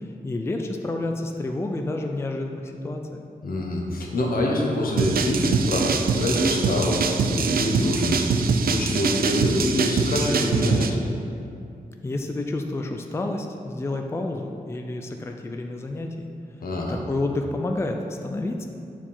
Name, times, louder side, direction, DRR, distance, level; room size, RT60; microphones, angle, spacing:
voice 1, 0.2-3.2 12.0-16.3 16.9-18.6, left 2 dB, 15° left, 3 dB, 0.4 m, -29 dB
voice 2, 3.4-11.0 16.6-16.9, left 1 dB, 80° left, -1 dB, 1.3 m, -25 dB
sound 1, 5.0-10.9, right 4 dB, 90° right, 0.5 m, -23 dB
8.7 x 4.9 x 5.5 m, 2.6 s
wide cardioid pair, 175°, 15 cm